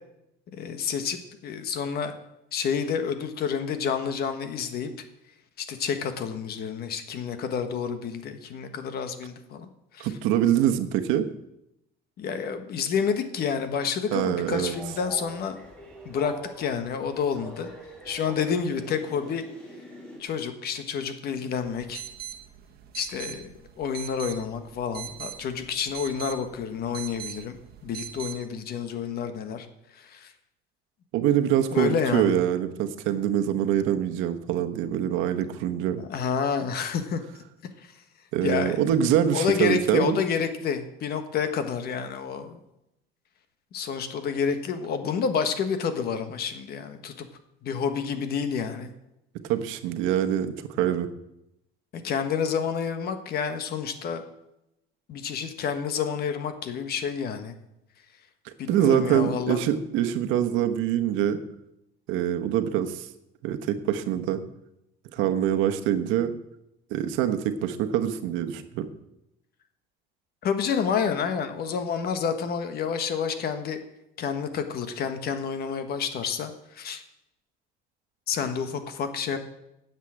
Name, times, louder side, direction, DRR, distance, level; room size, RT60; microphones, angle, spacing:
voice 1, 0.5-2.1 2.5-4.9 5.6-9.7 9.9-10.1 12.2-15.6 16.0-17.7 18.0-19.4 20.2-22.0 22.9-23.5 23.8-27.5 27.8-29.7 29.9-30.3 31.7-32.4 36.0-37.2 37.8-37.9 38.4-38.9 39.3-42.6 43.7-47.3 47.6-48.9 51.9-54.2 55.1-57.5 58.6-59.6 70.4-73.8 74.2-77.0 78.3-79.4, left 6 dB, 55° left, 8 dB, 1.4 m, -29 dB
voice 2, 10.0-11.3 14.1-14.7 31.1-36.0 38.3-40.2 49.5-51.1 58.4-61.4 62.1-63.1 63.4-64.4 65.1-66.3 66.9-68.9, right 10 dB, 85° right, 8 dB, 1.1 m, -24 dB
Train, 14.4-20.2, right 1 dB, 5° left, 3.2 m, -43 dB
sound 1, 21.6-28.4, right 11 dB, 55° right, 1.3 m, -41 dB
9.8 x 7.5 x 8.7 m, 0.86 s
cardioid pair, 140°, 20 cm